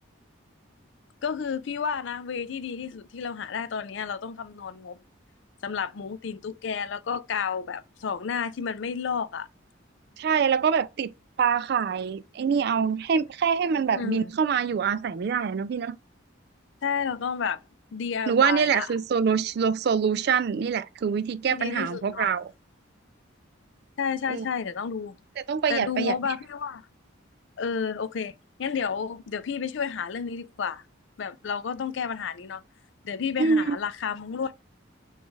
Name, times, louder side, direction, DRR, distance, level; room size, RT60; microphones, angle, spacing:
voice 1, 1.2-5.0 5.6-9.5 13.9-14.3 16.8-17.6 17.9-18.9 21.5-22.3 24.0-25.2 25.7-26.8 27.6-28.3 28.6-30.8 31.2-32.6 33.0-34.6, left 6 dB, 65° left, 0.4 m, -31 dB
voice 2, 10.2-11.1 11.4-16.0 18.3-22.5 24.3-24.5 25.5-26.1 33.4-33.8, right 6 dB, 50° right, 0.3 m, -25 dB
6.3 x 2.4 x 3.1 m
head